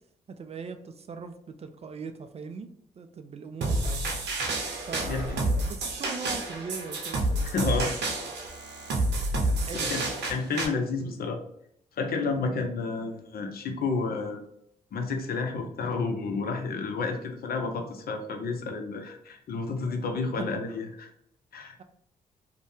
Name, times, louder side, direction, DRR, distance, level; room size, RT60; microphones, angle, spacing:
voice 1, 0.3-2.7 3.0-4.0 4.9-8.0 9.5-10.0, right 5 dB, 35° right, 8 dB, 0.3 m, -40 dB
sound 1, 3.6-10.7, right 2 dB, 65° right, 0.7 m, -29 dB
voice 2, 5.0-5.4 7.4-7.9 9.8-10.0 10.3-11.4 12.0-14.4 14.9-21.1 21.5-21.7, left 4 dB, 55° left, 5 dB, 0.6 m, -30 dB
2.6 x 2.1 x 3.3 m, 0.69 s
hypercardioid pair, 40°, 19 cm